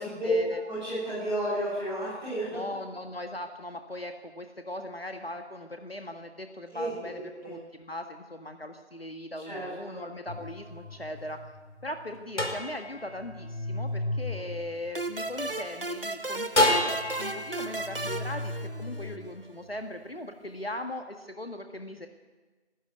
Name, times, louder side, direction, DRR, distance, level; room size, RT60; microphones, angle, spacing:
voice 1, 0.0-0.6 2.5-11.4 11.8-18.5 18.8-22.1, left 1 dB, 55° left, 6 dB, 1.7 m, -39 dB
voice 2, 0.7-2.6 6.7-7.5 9.4-10.0, right 1 dB, ahead, -16 dB, 5.0 m, -33 dB
sound 1, 10.3-15.6 16.6-19.9, left 1 dB, 75° left, 5.1 m, -32 dB
sound 2, 14.9-19.3, right 2 dB, 50° right, 1.1 m, -35 dB
21.0 x 13.0 x 9.8 m, 1.3 s
figure-of-eight pair, 170°, 35 cm